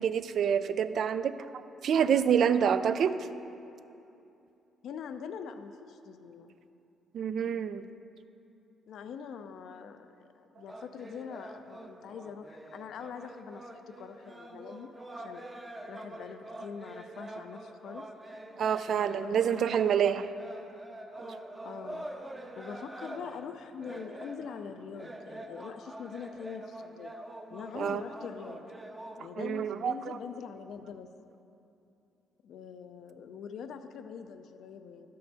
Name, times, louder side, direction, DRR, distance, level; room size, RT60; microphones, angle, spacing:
voice 1, 0.0-3.3 7.1-7.8 18.6-20.3 27.7-28.0 29.4-30.2, right 8 dB, 65° right, 13 dB, 0.3 m, -27 dB
voice 2, 4.8-6.5 8.9-14.9 15.2-15.4 15.9-18.1 19.1-19.8 21.6-22.1 22.6-27.1 27.5-28.6 29.2-31.1 32.4-35.1, left 7 dB, 75° left, 9 dB, 0.5 m, -43 dB
sound 1, 10.7-29.2, right 1 dB, 20° right, 0.7 m, -45 dB
12.5 x 5.6 x 4.0 m, 2.8 s
cardioid pair, 90°, 0 cm